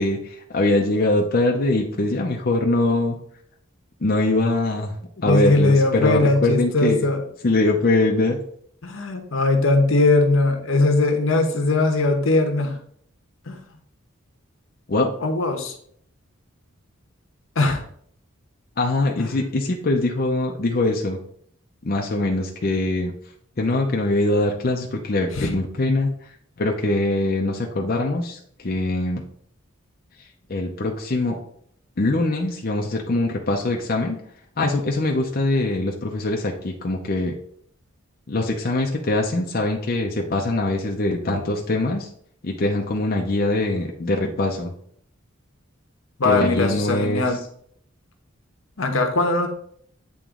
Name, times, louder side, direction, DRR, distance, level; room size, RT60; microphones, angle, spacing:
voice 1, 0.0-3.2 4.0-4.9 5.2-7.0 7.4-8.4 14.9-15.1 18.8-21.2 21.8-23.1 23.6-26.1 26.6-29.2 30.5-31.4 32.0-34.2 34.6-37.4 38.3-42.1 42.4-44.7 46.2-47.4, left 2 dB, 45° left, 0 dB, 0.6 m, -22 dB
voice 2, 5.2-7.2 8.8-12.8 13.5-13.6 15.2-15.7 17.6-17.8 25.3-25.5 46.2-47.4 48.8-49.5, left 2 dB, 75° left, 4 dB, 1.0 m, -20 dB
8.5 x 3.0 x 3.7 m, 0.63 s
head